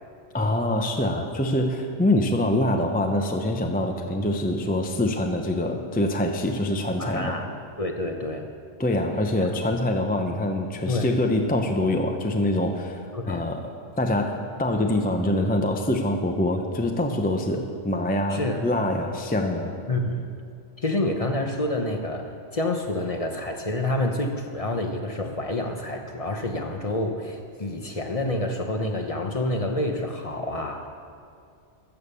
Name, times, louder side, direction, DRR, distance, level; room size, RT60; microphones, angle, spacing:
voice 1, 0.3-7.3 8.8-13.7 14.0-19.7, left 1 dB, 10° left, 4 dB, 0.6 m, -25 dB
voice 2, 7.0-7.5 7.8-8.5 10.9-11.1 13.1-13.5 18.3-18.6 19.9-20.3 20.8-30.9, left 1 dB, 35° left, 3 dB, 0.9 m, -28 dB
13.0 x 7.4 x 6.8 m, 2.4 s
omnidirectional pair, 1.2 m